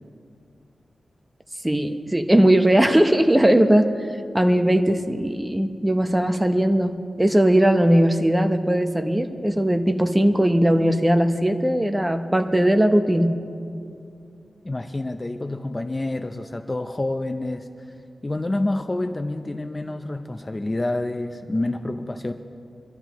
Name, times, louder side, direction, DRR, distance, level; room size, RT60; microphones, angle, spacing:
voice 1, 1.6-3.9 4.3-13.3, right 1 dB, 10° right, 7 dB, 0.8 m, -19 dB
voice 2, 14.6-17.7 18.2-22.3, left 2 dB, 25° left, 7 dB, 0.5 m, -28 dB
23.5 x 13.0 x 3.1 m, 2.4 s
wide cardioid pair, 100°, 0 cm